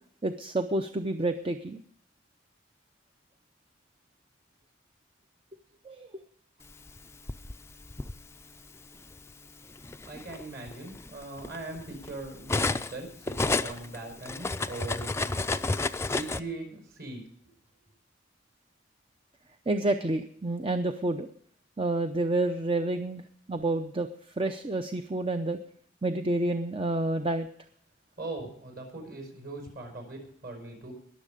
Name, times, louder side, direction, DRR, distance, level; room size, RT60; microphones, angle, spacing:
voice 1, 0.2-1.8 5.8-6.1 19.7-21.3 21.8-23.2 23.5-24.1 24.4-25.6 26.0-27.5, right 2 dB, 30° right, 8 dB, 0.6 m, -29 dB
Cutlery silverware, 6.9-8.2 9.1-9.3 9.7-13.0 13.2-16.4, left 3 dB, 15° left, 0.5 m, -31 dB
voice 2, 10.1-15.5 16.1-17.2 28.2-30.9, right 2 dB, 50° right, 2 dB, 5.2 m, -40 dB
21.0 x 7.4 x 5.2 m, 0.63 s
head